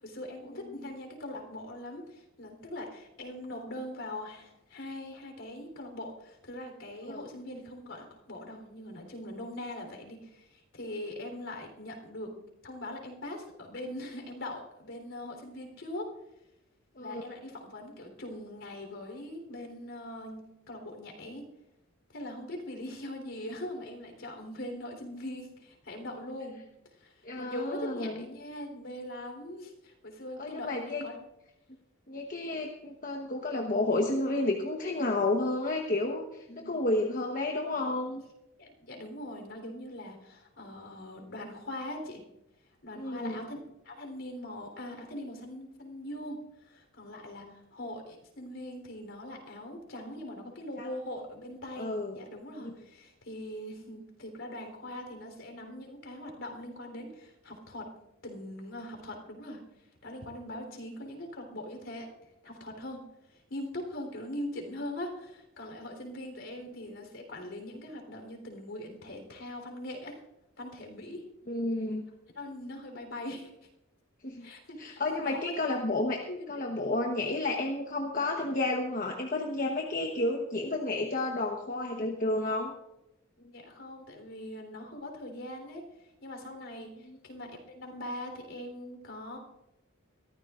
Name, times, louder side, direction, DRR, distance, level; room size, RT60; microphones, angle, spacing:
voice 1, 0.0-12.3 12.6-16.1 17.0-20.4 20.7-21.5 22.1-26.5 26.9-31.3 36.5-36.8 38.6-42.2 42.8-43.6 43.8-57.9 58.2-59.6 60.0-62.1 62.4-70.2 70.6-71.2 72.4-73.5 74.4-75.9 76.3-76.6 83.4-85.9 86.2-89.4, left 1 dB, 65° left, 3 dB, 3.7 m, -41 dB
voice 2, 27.2-28.3 30.4-31.0 32.1-38.2 42.9-43.5 50.8-50.9 51.8-52.2 52.6-52.7 71.5-72.0 74.2-74.5 74.8-82.7 87.0-87.2, left 2 dB, 40° left, 1 dB, 1.2 m, -31 dB
22.5 x 14.5 x 2.5 m, 0.88 s
head